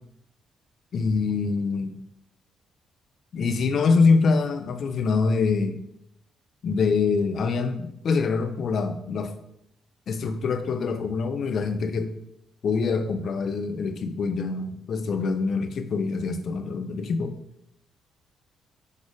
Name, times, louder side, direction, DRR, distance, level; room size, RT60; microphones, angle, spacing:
voice 1, 0.9-2.0 3.3-5.8 6.6-9.3 10.1-12.1 12.6-17.4, left 4 dB, 60° left, 8 dB, 0.7 m, -25 dB
6.4 x 3.5 x 5.0 m, 0.78 s
cardioid pair, 90°, 0 cm